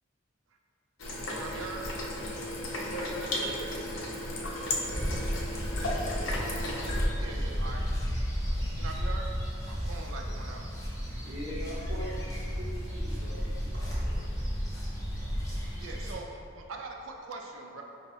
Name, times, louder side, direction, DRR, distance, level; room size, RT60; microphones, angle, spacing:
sound 1, 1.0-7.1, left 1 dB, 75° left, 0.6 m, -34 dB
voice 1, 1.1-1.8 7.1-7.8 8.8-9.3 9.6-10.7 15.8-17.8, right 3 dB, 80° right, 1 dB, 0.4 m, -42 dB
voice 2, 2.3-3.9 4.4-5.5 6.0-7.0, equal, 40° left, -12 dB, 1.1 m, -44 dB
sound 2, 4.9-16.1, equal, 15° left, 0.8 m, -33 dB
voice 3, 11.0-14.2, equal, 55° right, -9 dB, 1.3 m, -42 dB
4.5 x 2.7 x 3.2 m, 2.7 s
head